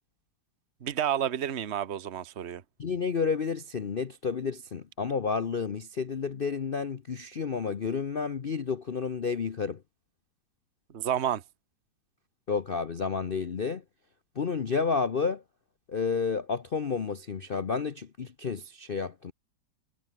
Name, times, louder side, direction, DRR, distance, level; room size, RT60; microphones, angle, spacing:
voice 1, 0.8-2.6 10.9-11.4, right 10 dB, 40° right, 1.2 m, -30 dB
voice 2, 2.8-9.8 12.5-13.8 14.4-15.4 15.9-19.3, left 5 dB, 60° left, 0.5 m, -30 dB
omnidirectional pair, 2.2 m